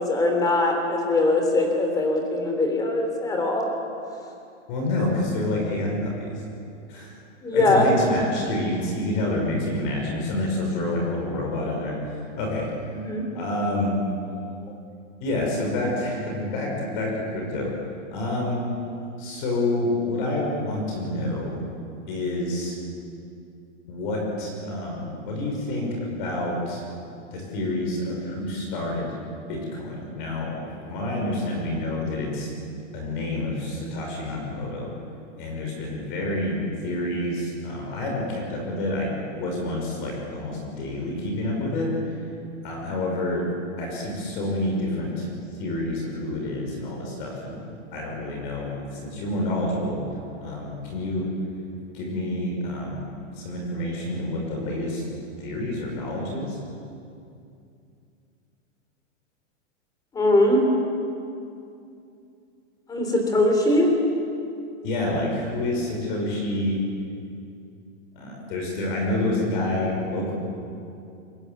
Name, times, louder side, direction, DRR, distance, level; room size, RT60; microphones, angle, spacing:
voice 1, 0.0-3.6 7.4-7.9 12.9-13.3 60.1-60.6 62.9-63.9, left 2 dB, 10° left, 3 dB, 3.3 m, -21 dB
voice 2, 4.7-6.4 6.9-7.2 7.5-12.0 12.4-12.7 13.3-13.9 15.2-17.7 18.1-18.6 19.2-21.6 22.1-22.8 23.9-26.8 27.3-29.1 29.5-32.5 32.9-34.9 35.3-41.9 42.6-43.5 43.8-45.3 45.6-50.0 50.4-51.3 51.9-53.0 53.4-55.0 55.4-56.6 64.8-66.8 68.1-70.3, left 1 dB, 40° left, -1 dB, 6.1 m, -28 dB
23.5 x 21.0 x 9.5 m, 2.6 s
supercardioid pair, 170°, 37 cm